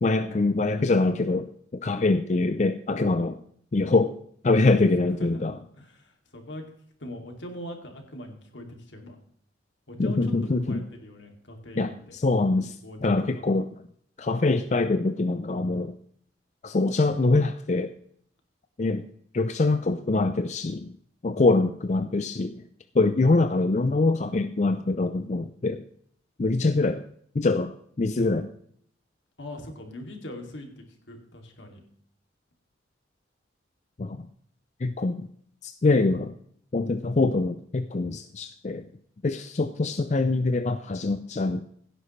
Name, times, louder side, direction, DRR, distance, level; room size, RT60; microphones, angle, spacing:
voice 1, 0.0-3.4 3.7-4.1 4.4-5.6 10.0-10.8 11.8-12.8 13.0-13.7 14.2-16.0 16.6-17.9 18.8-19.1 19.3-20.9 21.2-22.6 22.9-25.8 26.4-27.0 27.4-28.5 34.0-34.2 34.8-35.3 35.6-36.3 36.7-38.9 39.2-41.6, left 3 dB, 40° left, 9 dB, 0.4 m, -24 dB
voice 2, 4.9-5.4 5.8-6.6 7.0-9.2 9.9-12.1 12.8-13.4 29.4-31.8, left 1 dB, 80° left, 3 dB, 2.5 m, -41 dB
16.5 x 9.9 x 3.2 m, 0.64 s
head